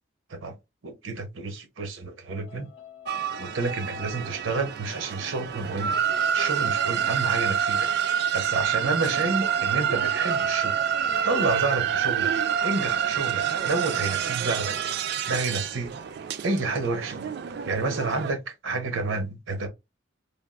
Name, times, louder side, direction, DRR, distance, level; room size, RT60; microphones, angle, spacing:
voice 1, 0.8-2.7 3.4-6.0 6.3-10.8 11.2-12.3 12.6-14.8 15.3-15.9 16.4-17.3 17.6-19.7, right 3 dB, 90° right, 0.7 m, -29 dB
sound 1, 2.3-8.6 8.9-9.0, left 4 dB, 70° left, 0.5 m, -48 dB
sound 2, 3.1-18.3, right 8 dB, 55° right, 0.3 m, -27 dB
3.4 x 2.3 x 2.3 m
head